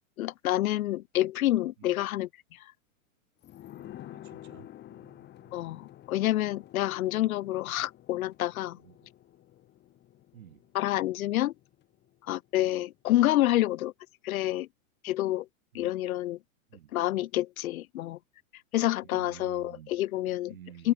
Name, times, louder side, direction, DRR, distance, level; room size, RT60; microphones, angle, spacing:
voice 1, 0.2-2.3 5.5-8.8 10.7-11.5 12.3-13.9 14.2-14.7 15.0-15.5 15.7-16.4 16.9-18.2 18.7-20.5 20.8-20.9, left 15 dB, 90° left, 0.7 m, -28 dB
sound 1, 3.4-12.7 13.0-13.1, left 13 dB, 25° left, 1.9 m, -50 dB
voice 2, 3.7-5.6 8.7-9.1 10.3-10.7 15.7-16.0 16.7-17.0 19.0-20.0 20.5-20.9, right 11 dB, 85° right, 5.6 m, -52 dB
supercardioid pair, 140°, 41 cm